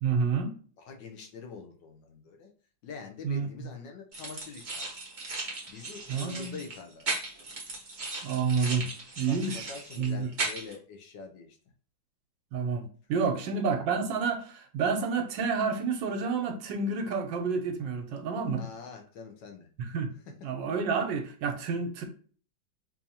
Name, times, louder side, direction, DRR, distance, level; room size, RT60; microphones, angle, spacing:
voice 1, 0.0-0.5 3.2-3.5 6.1-6.6 8.2-8.9 9.2-9.7 10.0-10.3 12.5-18.6 19.8-20.1 20.4-22.0, right 5 dB, 75° right, 1.3 m, -29 dB
voice 2, 0.8-2.5 2.8-4.9 5.7-7.1 9.3-11.6 18.6-19.7, left 5 dB, 75° left, 1.4 m, -45 dB
sound 1, 4.1-10.8, right 3 dB, 40° right, 0.7 m, -37 dB
4.5 x 2.7 x 2.7 m
omnidirectional pair, 2.0 m